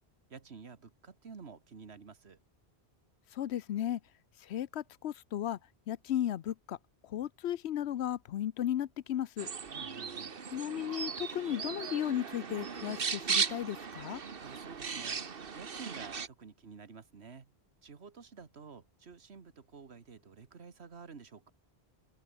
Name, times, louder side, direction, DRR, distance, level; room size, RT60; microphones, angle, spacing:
voice 1, 0.3-2.4 9.7-10.4 14.4-15.2 15.5-17.5 17.8-21.5, right 5 dB, 80° right, 1.9 m, -51 dB
voice 2, 3.3-4.0 4.4-5.6 5.9-6.8 7.0-9.5 10.5-14.2, left 11 dB, 80° left, 0.9 m, -35 dB
sound 1, 9.4-16.3, right 6 dB, 60° right, 1.4 m, -37 dB
omnidirectional pair, 1.1 m